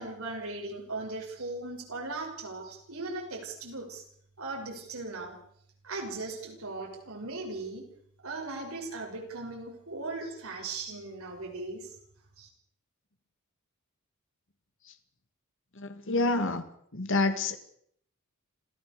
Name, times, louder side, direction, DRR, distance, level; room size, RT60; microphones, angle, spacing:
voice 1, 0.0-4.0 4.4-5.4 5.8-7.9 8.2-11.9 12.4-12.5, right 2 dB, 75° right, 1 dB, 6.1 m, -38 dB
voice 2, 15.8-16.6 16.9-17.6, left 2 dB, 60° left, 9 dB, 2.0 m, -27 dB
26.5 x 15.5 x 6.9 m, 0.66 s
head